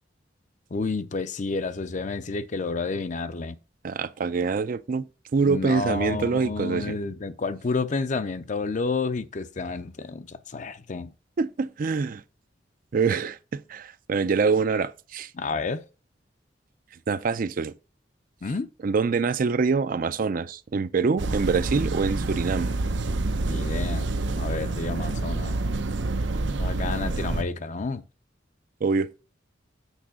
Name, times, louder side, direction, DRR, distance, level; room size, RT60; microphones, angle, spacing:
voice 1, 0.7-3.6 5.4-11.1 15.3-15.8 18.4-18.7 21.3-21.4 23.4-25.6 26.6-28.0, left 3 dB, 40° left, 0.5 m, -30 dB
voice 2, 3.8-5.1 5.3-7.0 11.4-12.2 12.9-15.3 17.1-17.7 18.8-22.7 28.8-29.1, right 4 dB, 50° right, 0.4 m, -25 dB
sound 1, 21.2-27.4, right 2 dB, 85° right, 0.7 m, -27 dB
8.2 x 3.7 x 6.3 m
head